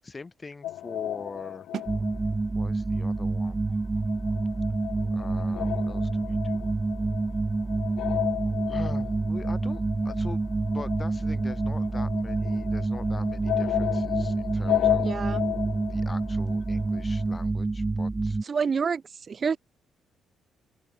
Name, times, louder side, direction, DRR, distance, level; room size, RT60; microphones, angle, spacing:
voice 1, 0.0-1.7 2.5-3.7 5.1-6.7 8.7-15.2 15.8-18.4, left 3 dB, 25° left, 4.7 m, -43 dB
sound 1, 0.6-3.2 3.5-17.3, left 13 dB, 85° left, 0.4 m, -33 dB
sound 2, 1.7-7.4, right 9 dB, 65° right, 2.3 m, -47 dB
sound 3, 1.9-18.4, right 3 dB, 20° right, 0.9 m, -28 dB
voice 2, 15.0-15.4 18.4-19.0 19.3-19.6, right 5 dB, 40° right, 0.3 m, -27 dB
open air
cardioid pair, 90°, 0 cm